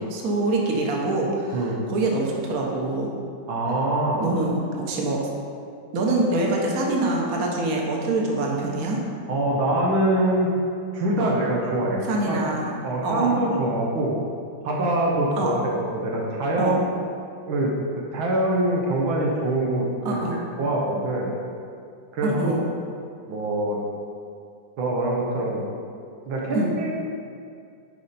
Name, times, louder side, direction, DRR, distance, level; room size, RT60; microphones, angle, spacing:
voice 1, 0.1-3.1 4.2-5.2 5.9-9.0 11.2-11.3 12.1-12.7 13.0-13.3 15.4-15.6 16.6-16.8 20.0-20.4 22.2-22.6 26.5-26.7, right 2 dB, 50° right, -1 dB, 1.4 m, -25 dB
voice 2, 3.5-4.2 9.3-10.5 10.9-12.5 12.8-14.1 14.6-16.8 17.5-17.7 18.1-20.2 20.6-21.3 22.1-22.6 23.3-23.8 24.8-25.6 26.3-26.9, right 1 dB, 90° right, -3 dB, 1.8 m, -24 dB
9.8 x 5.1 x 4.2 m, 2.3 s
omnidirectional pair, 2.1 m